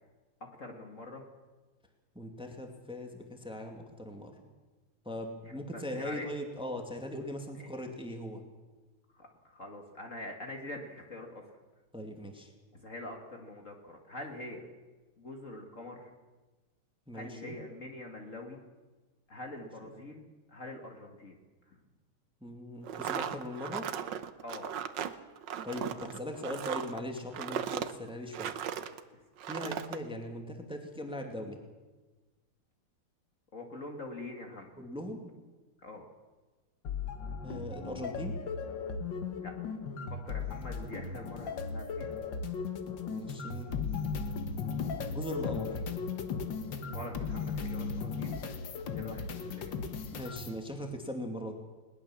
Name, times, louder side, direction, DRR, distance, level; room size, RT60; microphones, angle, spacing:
voice 1, 0.6-1.3 5.7-6.3 7.5-7.7 9.1-11.4 12.7-14.7 15.2-16.1 17.1-18.6 19.3-21.4 21.7-21.8 24.4-24.7 29.1-29.2 33.5-34.7 35.8-36.1 39.4-39.5 40.1-42.1 46.9-48.4 48.9-49.8, left 2 dB, 40° left, 3 dB, 2.2 m, -44 dB
voice 2, 2.1-4.3 5.1-8.4 11.9-12.5 17.1-17.6 19.6-19.7 22.4-23.9 25.6-28.6 29.5-31.6 34.8-35.3 37.4-38.3 43.0-43.7 45.1-45.8 50.1-51.5, left 1 dB, ahead, 3 dB, 2.2 m, -40 dB
sound 1, 22.8-29.0 29.4-30.0, right 9 dB, 65° right, 1.5 m, -37 dB
sound 2, 36.8-50.6, left 5 dB, 65° left, 2.0 m, -36 dB
20.5 x 20.0 x 7.3 m, 1.3 s
omnidirectional pair, 2.3 m